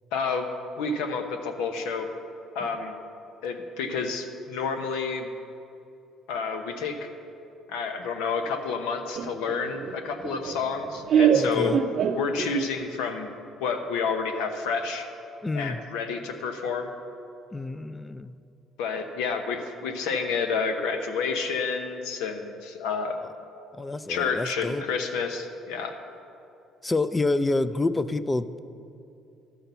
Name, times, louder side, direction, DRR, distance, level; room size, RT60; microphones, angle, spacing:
voice 1, 0.1-0.5 0.8-2.1 2.5-3.0 3.4-5.3 6.3-7.1 7.7-11.8 12.2-13.3 13.6-15.1 15.5-16.9 18.8-23.2 24.1-26.0, left 5 dB, 90° left, 6 dB, 0.9 m, -29 dB
Laughter, 9.1-12.8, right 7 dB, 55° right, 0.6 m, -25 dB
voice 2, 11.3-11.8 15.4-15.8 17.5-18.4 23.8-24.8 26.8-28.6, left 2 dB, 15° left, 14 dB, 0.4 m, -28 dB
12.5 x 5.8 x 6.8 m, 2.7 s
cardioid pair, 95°, 0 cm